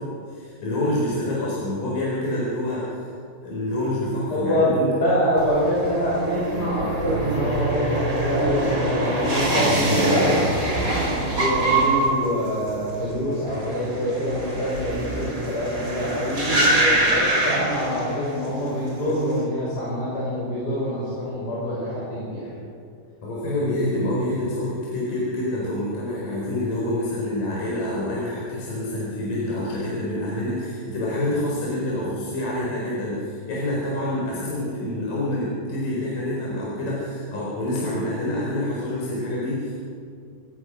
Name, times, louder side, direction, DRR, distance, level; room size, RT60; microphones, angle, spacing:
voice 1, 0.0-3.1 3.4-4.9 9.7-10.0 23.2-39.7, left 1 dB, 45° left, -6 dB, 5.6 m, -27 dB
voice 2, 4.3-10.8 11.3-22.4, equal, 20° left, -7 dB, 5.7 m, -25 dB
sound 1, 5.4-18.5 18.7-19.3, right 1 dB, 15° right, 4.1 m, -24 dB
29.0 x 16.5 x 6.4 m, 2.5 s
omnidirectional pair, 5.9 m